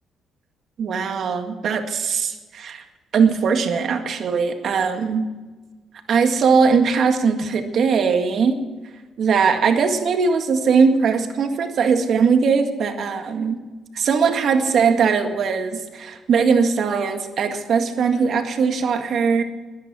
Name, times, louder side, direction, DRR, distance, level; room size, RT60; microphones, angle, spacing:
voice 1, 0.8-2.8 3.1-5.2 6.1-8.6 9.2-13.6 13.9-19.4, right 5 dB, 60° right, 5 dB, 1.9 m, -20 dB
20.5 x 9.7 x 6.3 m, 1.3 s
cardioid pair, 90°, 0 cm